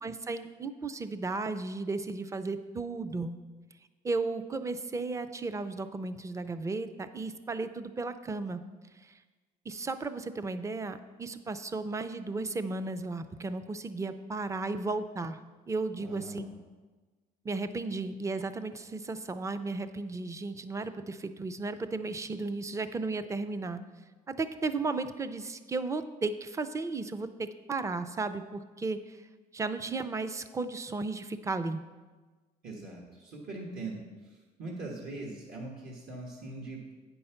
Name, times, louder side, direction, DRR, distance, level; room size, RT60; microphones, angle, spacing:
voice 1, 0.0-3.4 4.0-8.6 9.0-9.1 9.7-15.4 15.7-16.4 17.4-23.8 24.3-29.2 29.5-31.8, right 3 dB, 20° right, 11 dB, 0.5 m, -34 dB
voice 2, 15.9-16.5 32.6-36.9, right 2 dB, 60° right, -2 dB, 1.5 m, -41 dB
8.9 x 5.4 x 5.8 m, 1.3 s
cardioid pair, 110°, 17 cm